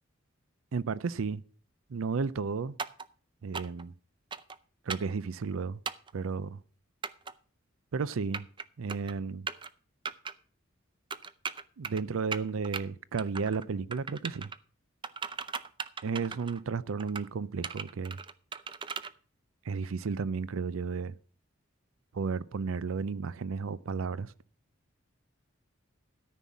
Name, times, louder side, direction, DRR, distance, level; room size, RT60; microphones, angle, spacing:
voice 1, 0.7-1.4 1.9-2.8 3.4-3.9 4.9-5.8 6.1-6.6 7.9-8.5 8.8-9.5 11.8-14.5 16.0-18.2 19.7-21.1 22.1-24.3, right 5 dB, 90° right, 0.5 m, -33 dB
sound 1, 2.8-3.1 3.5-3.8 4.3-4.6 4.9-5.1 5.9-6.1 7.0-7.3 8.1-8.6 8.9-9.1 9.5-9.7 10.1-10.3 11.1-12.0 12.3-12.8 13.2-13.7 13.9-14.6 15.0-16.6 17.0-17.3 17.6-19.1, right 5 dB, 25° right, 0.5 m, -37 dB
13.5 x 5.5 x 7.3 m
head